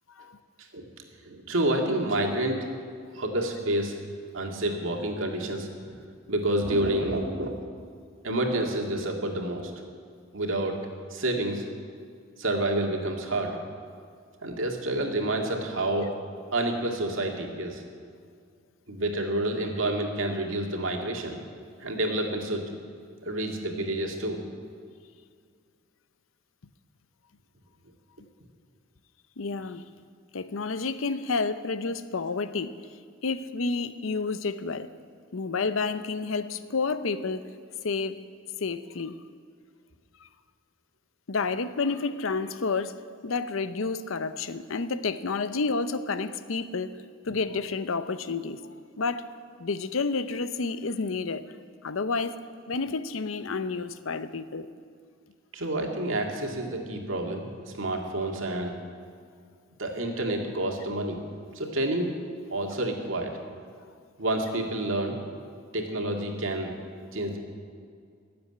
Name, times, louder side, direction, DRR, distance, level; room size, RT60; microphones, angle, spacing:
voice 1, 1.2-2.7 3.1-4.0 4.3-5.9 6.3-7.5 8.2-9.7 10.3-10.8 11.1-11.6 12.4-13.6 14.4-16.1 16.5-17.8 18.9-21.4 21.8-22.6 23.2-24.4 55.5-58.8 59.8-61.2 61.5-62.2 62.5-63.3 64.2-65.2 65.7-66.7 67.1-67.4, right 1 dB, 75° right, 2 dB, 2.1 m, -29 dB
voice 2, 29.4-29.8 30.3-32.7 33.2-34.9 35.3-37.5 37.8-38.2 38.6-39.2 41.3-42.9 43.2-47.0 47.3-48.6 49.0-49.3 49.6-51.4 51.8-52.4 52.7-54.7, left 4 dB, 80° left, 12 dB, 0.7 m, -30 dB
15.5 x 7.7 x 9.9 m, 2.2 s
head